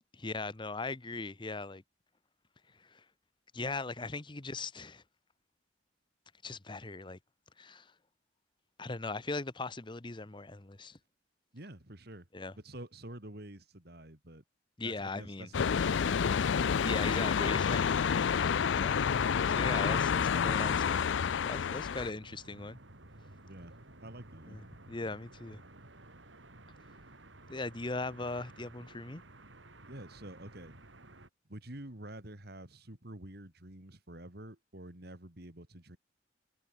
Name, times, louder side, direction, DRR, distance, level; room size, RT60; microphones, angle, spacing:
voice 1, 0.1-1.8 2.8-3.0 3.5-5.0 6.4-7.2 7.6-7.9 8.8-11.0 12.3-12.5 14.8-15.5 16.8-21.0 21.4-22.8 24.5-25.6 27.5-29.2, left 3 dB, 25° left, 1.0 m, -39 dB
voice 2, 11.5-12.3 12.6-14.4 14.8-17.4 23.4-23.7 24.0-24.6 29.9-30.7 31.5-36.0, right 1 dB, 55° right, 3.2 m, -48 dB
sound 1, 15.5-22.1, left 7 dB, 75° left, 0.4 m, -29 dB
sound 2, 16.4-31.3, right 1 dB, 80° right, 4.5 m, -54 dB
head